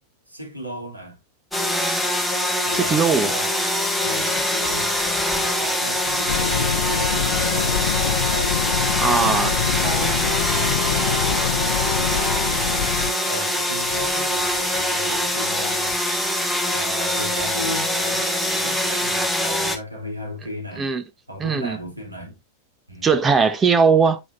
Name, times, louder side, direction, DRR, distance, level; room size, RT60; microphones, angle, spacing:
voice 1, 0.3-1.2 2.6-3.6 4.0-8.6 9.1-12.5 13.3-16.0 16.7-20.9 21.3-22.4 22.9-23.2, equal, 85° right, 2.8 m, -35 dB
sound 1, 1.5-19.8, left 1 dB, ahead, 2.0 m, -23 dB
voice 2, 2.7-3.3 9.0-9.5 20.8-21.0 21.4-21.8 23.0-24.2, right 5 dB, 20° right, 0.9 m, -19 dB
sound 2, 6.3-13.1, left 9 dB, 65° left, 0.4 m, -25 dB
9.1 x 6.1 x 2.6 m
figure-of-eight pair, 90°, 0 cm